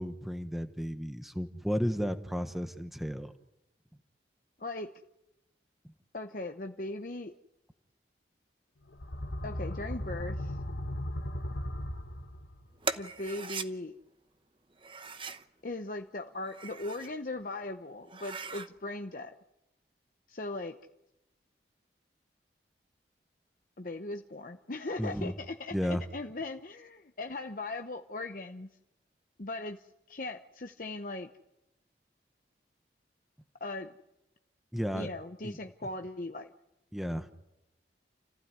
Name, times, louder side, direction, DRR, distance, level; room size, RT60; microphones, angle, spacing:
voice 1, 0.0-3.3 25.0-25.3 25.7-26.0 34.7-35.1 35.4-35.6 36.9-37.3, equal, ahead, 8 dB, 1.1 m, -33 dB
voice 2, 4.6-4.9 6.1-7.3 9.4-10.6 13.0-13.9 15.6-19.3 20.3-20.8 23.8-28.7 29.4-31.3 33.6-33.9 34.9-36.5, left 2 dB, 50° left, 5 dB, 0.9 m, -39 dB
sound 1, 8.9-12.7, left 1 dB, 90° left, 1.5 m, -37 dB
sound 2, 12.8-13.7 14.8-15.5 16.4-17.1 17.6-17.7 18.0-18.7, right 4 dB, 30° right, 0.9 m, -39 dB
29.5 x 15.5 x 9.7 m, 0.93 s
head